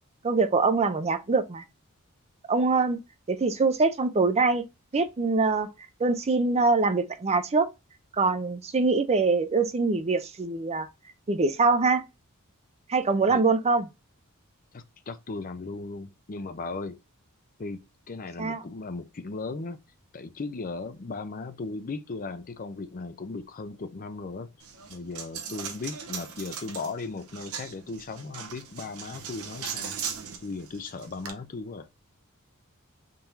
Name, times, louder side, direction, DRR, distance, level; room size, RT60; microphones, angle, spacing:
voice 1, 0.2-1.6 2.5-3.0 3.3-4.6 4.9-5.7 6.0-7.7 8.2-10.9 11.3-12.0 12.9-13.8 18.4-18.6, right 3 dB, 30° right, 0.5 m, -24 dB
voice 2, 14.7-17.0 17.6-19.8 20.1-24.5 24.9-30.0 30.4-31.9, left 3 dB, 40° left, 0.5 m, -37 dB
Coin (dropping), 24.6-31.3, right 7 dB, 75° right, 0.8 m, -39 dB
3.8 x 2.7 x 4.5 m
head